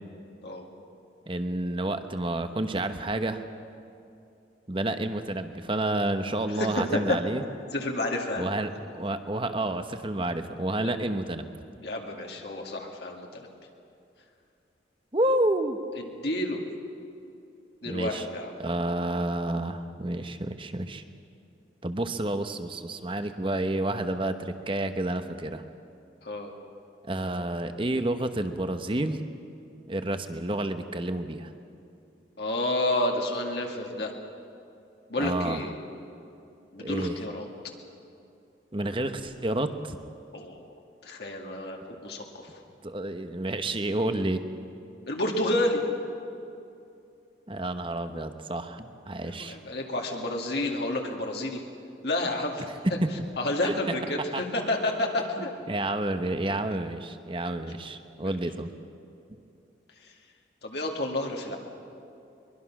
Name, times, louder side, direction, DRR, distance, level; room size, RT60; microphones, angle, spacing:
voice 1, 1.3-3.4 4.7-7.4 8.4-11.5 15.1-15.8 17.9-18.3 18.6-21.0 21.8-25.6 27.1-29.2 29.9-31.5 35.2-35.7 36.8-37.2 38.7-40.0 42.8-44.4 47.5-49.6 53.6-53.7 54.3-54.4 55.4-58.7, right 1 dB, 30° right, 8 dB, 1.1 m, -30 dB
voice 2, 6.5-7.2 7.7-8.5 11.8-13.5 16.1-16.6 17.8-18.5 26.2-26.5 32.4-34.1 35.1-35.7 36.7-37.5 40.3-40.7 41.0-42.5 45.1-45.8 49.2-51.6 52.0-52.7 53.4-55.5 58.2-58.3 60.6-61.6, left 1 dB, 60° left, 1 dB, 2.2 m, -30 dB
23.0 x 22.5 x 6.1 m, 2.6 s
head